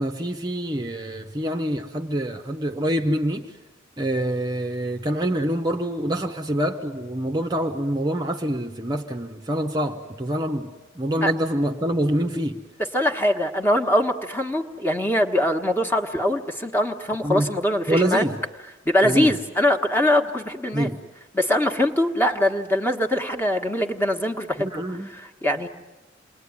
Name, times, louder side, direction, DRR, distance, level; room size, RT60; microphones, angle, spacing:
voice 1, 0.0-3.5 4.0-10.7 11.0-12.6 17.2-17.5 17.9-18.4 19.0-19.3 20.7-21.0 24.6-25.1, right 1 dB, 20° right, 0.9 m, -25 dB
voice 2, 12.8-18.2 18.8-20.9 21.3-25.7, left 1 dB, 10° left, 1.4 m, -23 dB
28.5 x 21.5 x 9.6 m
head